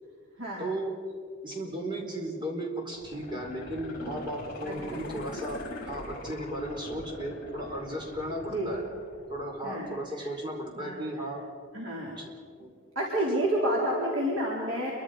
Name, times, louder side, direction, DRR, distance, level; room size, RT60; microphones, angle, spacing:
voice 1, 0.6-8.8 9.3-11.4 12.2-12.3 12.6-12.7, right 1 dB, 20° right, 0 dB, 4.4 m, -35 dB
sound 1, 2.9-9.9 10.3-10.4, left 2 dB, 45° left, 5.5 m, -42 dB
voice 2, 4.6-5.0 8.5-8.7 9.6-10.3 10.7-11.3 11.7-12.1 12.9-14.9, right 1 dB, 65° right, -5 dB, 4.4 m, -30 dB
28.5 x 24.5 x 5.2 m, 2.1 s
head